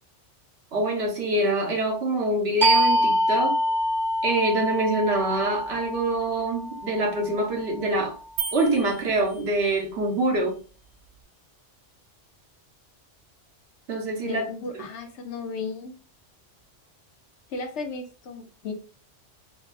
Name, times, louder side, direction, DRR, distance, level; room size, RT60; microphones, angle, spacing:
voice 1, 0.7-3.6 4.2-8.2 8.5-10.6 13.9-14.4, right 2 dB, 60° right, 1.1 m, -25 dB
sound 1, 2.6-7.9, equal, ahead, 0.5 m, -25 dB
sound 2, 8.4-9.9, right 6 dB, 85° right, 0.9 m, -35 dB
voice 2, 14.2-16.0 17.5-18.7, left 4 dB, 70° left, 0.9 m, -35 dB
3.8 x 2.3 x 2.4 m
omnidirectional pair, 1.2 m